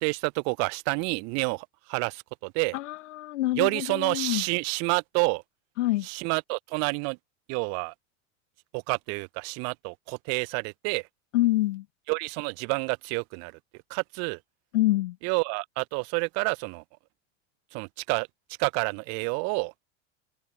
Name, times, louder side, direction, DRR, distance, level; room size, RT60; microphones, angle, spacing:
voice 1, 0.0-2.8 3.6-5.4 6.0-7.2 7.5-7.9 8.7-11.1 12.1-13.5 13.9-14.4 15.2-16.8 17.7-18.3 18.6-19.7, right 33 dB, 40° right, 0.5 m, -29 dB
voice 2, 2.7-4.4 5.8-6.1 11.3-11.8 14.7-15.2, left 16 dB, 65° left, 1.1 m, -26 dB
figure-of-eight pair, 80°, 39 cm